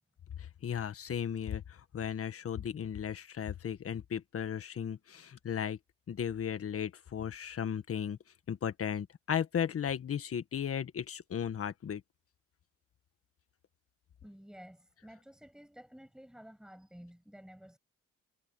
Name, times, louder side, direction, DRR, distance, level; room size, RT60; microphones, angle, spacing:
voice 1, 0.6-5.8 6.1-8.2 8.5-12.0, left 8 dB, 50° left, 1.6 m, -35 dB
voice 2, 14.2-17.8, equal, ahead, 7.6 m, -52 dB
cardioid pair, 90°, 30 cm